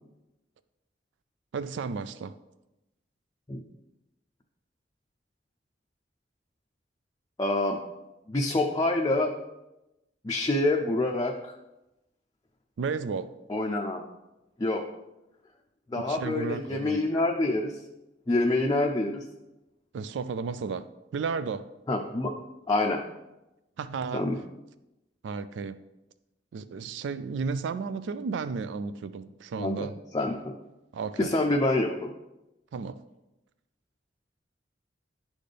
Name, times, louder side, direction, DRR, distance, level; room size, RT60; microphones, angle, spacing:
voice 1, 1.5-2.3 12.8-13.3 16.0-17.0 19.9-21.7 23.8-24.3 25.2-25.8 26.5-29.9 30.9-31.3 32.7-33.0, right 5 dB, 75° right, 14 dB, 0.3 m, -33 dB
voice 2, 7.4-7.8 8.3-9.3 10.2-11.5 13.5-14.0 14.6-14.8 15.9-17.8 18.3-19.2 21.9-22.3 22.7-23.0 24.1-24.4 29.6-29.9 30.1-30.5 31.2-32.1, left 2 dB, 20° left, 0 dB, 0.5 m, -26 dB
11.0 x 4.2 x 3.3 m, 0.95 s
head